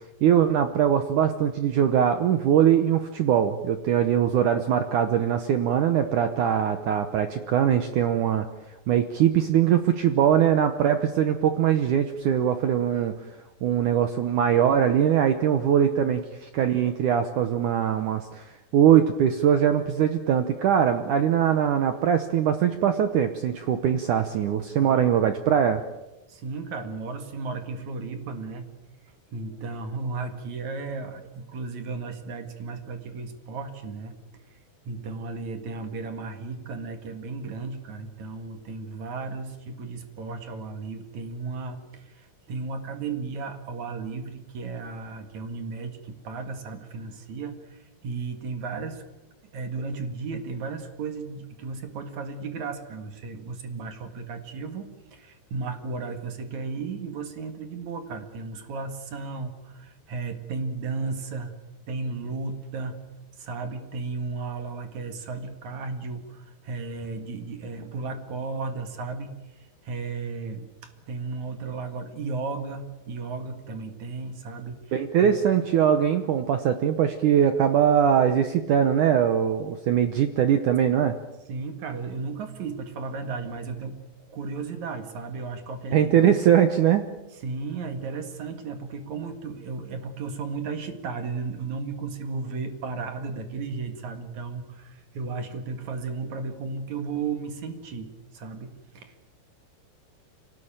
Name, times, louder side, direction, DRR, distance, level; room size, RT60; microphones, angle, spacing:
voice 1, 0.2-8.5 8.9-13.1 13.6-25.8 74.9-81.2 85.9-87.1, right 9 dB, 75° right, 8 dB, 1.8 m, -22 dB
voice 2, 24.8-25.3 26.3-28.7 29.0-34.1 34.8-49.0 49.5-61.5 61.9-63.0 63.4-75.3 81.5-84.0 84.3-86.3 87.3-99.3, right 4 dB, 50° right, 7 dB, 2.7 m, -34 dB
25.5 x 18.0 x 8.9 m, 1.0 s
omnidirectional pair, 5.0 m